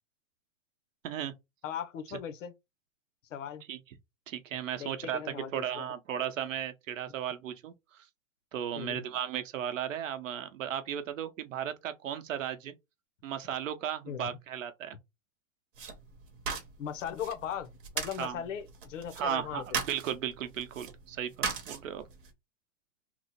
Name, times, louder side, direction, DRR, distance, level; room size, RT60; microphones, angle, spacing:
voice 1, 1.6-2.5 3.3-3.6 4.8-5.8 8.7-9.0 14.1-14.3 16.8-19.8, left 8 dB, 75° left, 0.8 m, -38 dB
voice 2, 4.3-8.0 8.5-12.7 13.2-15.0 18.2-18.4 19.2-22.0, right 9 dB, 75° right, 0.8 m, -35 dB
sound 1, 15.7-22.3, right 6 dB, 45° right, 0.9 m, -39 dB
3.0 x 2.0 x 4.1 m
supercardioid pair, 175°, 38 cm